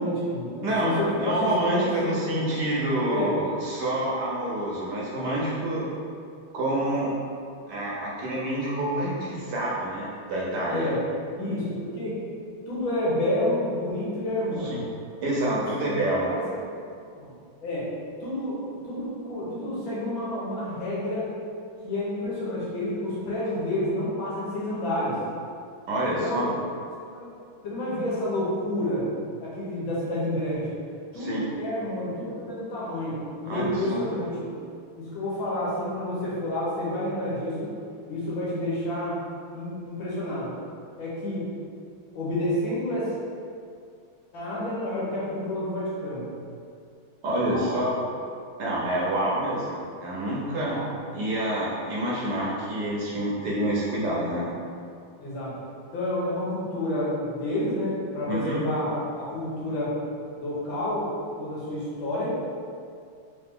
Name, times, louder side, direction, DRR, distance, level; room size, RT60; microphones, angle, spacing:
voice 1, 0.0-2.2 3.1-3.3 6.5-6.7 10.7-11.0 11.3-12.2 12.7-14.8 15.5-15.6 16.3-16.4 16.7-16.9 17.2-17.3 17.6-17.9 18.2-21.3 21.8-25.2 26.0-26.5 27.1-27.3 27.6-29.1 29.4-30.7 31.1-34.5 34.9-37.7 38.1-39.2 39.5-40.5 41.0-41.5 42.1-43.1 44.3-46.3 47.4-47.7 50.6-50.9 55.2-55.6 55.9-60.0 60.4-61.1 61.4-62.4, left 1 dB, 75° left, -7 dB, 1.8 m, -29 dB
voice 2, 0.6-5.9 6.5-7.1 7.7-10.9 14.7-14.8 15.2-16.3 25.9-26.5 31.1-31.5 33.5-34.0 47.2-47.9 48.6-50.7 51.1-54.5 58.3-58.6, right 1 dB, 65° right, -5 dB, 1.3 m, -27 dB
3.8 x 3.1 x 3.6 m, 2.3 s
omnidirectional pair, 2.2 m